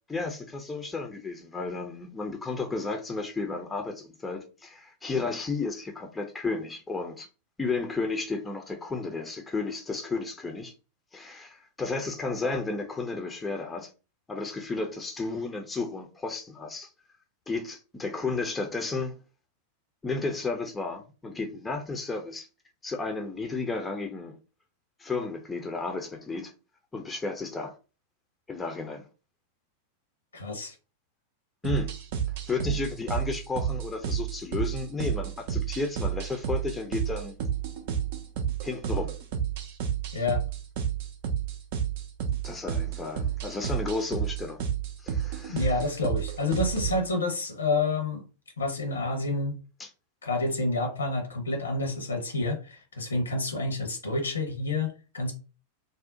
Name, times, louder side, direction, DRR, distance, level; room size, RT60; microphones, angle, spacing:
voice 1, 0.1-7.3 7.6-10.7 11.1-13.9 14.3-16.9 17.5-19.2 20.0-22.5 22.8-24.4 25.0-26.5 26.9-27.7 28.5-29.1 31.6-31.9 32.5-37.4 38.6-39.1 42.4-44.6 45.0-45.7 49.8-49.9, left 3 dB, 15° left, 0.5 m, -33 dB
voice 2, 30.3-30.7 40.1-40.4 45.5-48.2 48.6-49.6 50.2-55.3, left 2 dB, 75° left, 0.8 m, -29 dB
sound 1, 31.6-47.0, right 8 dB, 50° right, 0.5 m, -31 dB
2.6 x 2.0 x 3.7 m
figure-of-eight pair, 90°, 0 cm